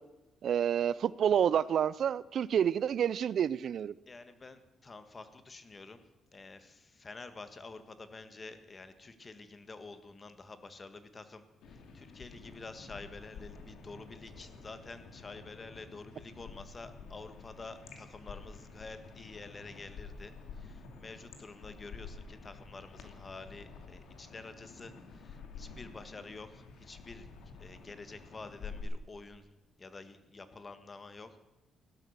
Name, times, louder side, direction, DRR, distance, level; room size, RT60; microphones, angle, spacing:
voice 1, 0.4-3.9, right 9 dB, 60° right, 19 dB, 0.4 m, -28 dB
voice 2, 4.1-6.0 6.3-27.3 27.5-29.5 29.8-31.4, left 3 dB, 30° left, 10 dB, 1.6 m, -49 dB
sound 1, 11.6-28.8, left 5 dB, 80° left, 2.7 m, -50 dB
16.5 x 12.0 x 6.6 m, 0.99 s
cardioid pair, 90°, 0 cm